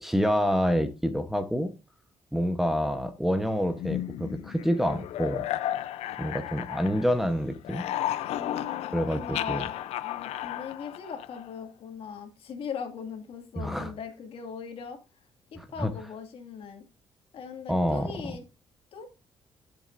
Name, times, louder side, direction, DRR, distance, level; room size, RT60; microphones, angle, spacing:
voice 1, 0.0-1.7 2.3-5.5 6.2-7.8 8.9-9.2 9.5-9.6 13.5-13.9 15.6-15.9 17.7-18.4, equal, 5° right, 6 dB, 0.9 m, -27 dB
sound 1, 3.8-7.3 7.5-11.6, left 12 dB, 90° left, 0.5 m, -34 dB
voice 2, 8.3-15.0 15.7-16.8 17.3-18.4 18.9-19.1, left 6 dB, 60° left, 4 dB, 2.1 m, -39 dB
11.5 x 7.5 x 2.6 m, 0.28 s
cardioid pair, 120°, 10 cm